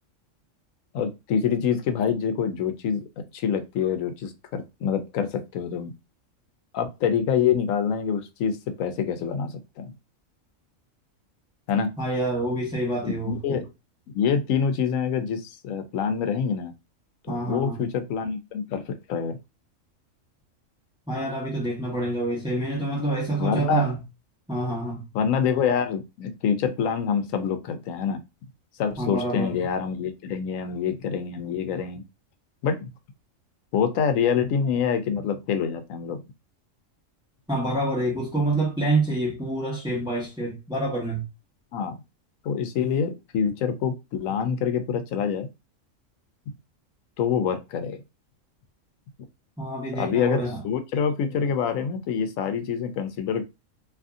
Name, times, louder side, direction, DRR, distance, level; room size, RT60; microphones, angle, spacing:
voice 1, 0.9-5.9 6.7-9.9 11.7-11.9 13.0-13.6 14.1-16.7 17.3-19.4 23.4-23.9 25.1-28.2 28.8-32.0 32.6-32.9 33.7-36.2 41.7-42.0 42.4-45.5 47.2-48.0 49.9-53.4, left 7 dB, 80° left, 1.0 m, -26 dB
voice 2, 12.0-13.6 17.3-17.8 21.1-24.0 24.5-25.0 29.0-29.6 37.5-41.3 49.6-50.6, right 2 dB, 5° right, 0.8 m, -27 dB
2.7 x 2.6 x 2.3 m
omnidirectional pair, 1.4 m